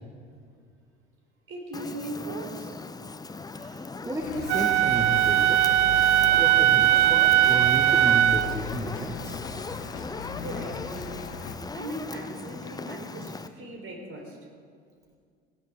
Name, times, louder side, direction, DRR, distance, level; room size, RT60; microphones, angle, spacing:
voice 1, 1.5-2.7 10.4-11.2 11.7-14.4, right 1 dB, 40° right, 2 dB, 3.9 m, -38 dB
Fire, 1.7-13.5, left 3 dB, 10° left, 0.7 m, -39 dB
voice 2, 4.0-5.6 6.3-9.4, right 1 dB, 10° right, 1 dB, 1.7 m, -33 dB
sound 1, 4.2-11.6, left 6 dB, 80° left, 1.2 m, -38 dB
Wind instrument woodwind instrument, 4.5-8.6, right 12 dB, 75° right, 0.6 m, -20 dB
17.0 x 17.0 x 3.6 m, 2.1 s
hypercardioid pair, 70°, 34 cm